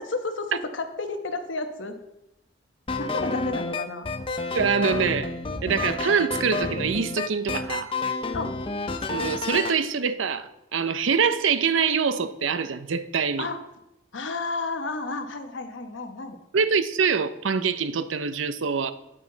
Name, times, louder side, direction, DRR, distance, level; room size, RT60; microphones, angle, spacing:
voice 1, 0.1-2.0 3.0-4.1 8.3-8.6 13.4-13.6 14.1-16.4, left 3 dB, 80° left, 6 dB, 1.1 m, -31 dB
sound 1, 2.9-9.8, left 3 dB, 25° left, 0.5 m, -30 dB
voice 2, 4.5-5.3 5.6-7.9 9.1-13.5 16.5-18.9, right 6 dB, 90° right, 13 dB, 0.6 m, -24 dB
9.4 x 9.2 x 3.9 m, 0.86 s
head